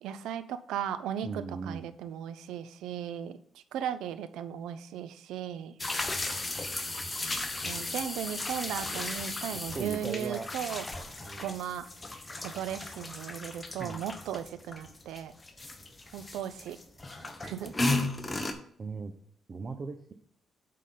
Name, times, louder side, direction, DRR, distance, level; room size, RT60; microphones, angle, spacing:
voice 1, 0.0-5.8 7.6-10.8 11.4-11.9 12.4-15.3 16.1-16.8 17.4-17.7, right 9 dB, 85° right, 12 dB, 0.5 m, -36 dB
voice 2, 1.2-1.9 9.2-9.3 9.7-10.5 11.3-11.6 13.8-14.0 18.8-19.1 19.5-20.1, right 4 dB, 40° right, 5 dB, 0.8 m, -38 dB
sound 1, 5.8-18.5, left 2 dB, 20° left, 1.0 m, -35 dB
8.4 x 3.8 x 5.7 m, 0.63 s
cardioid pair, 80°, 0 cm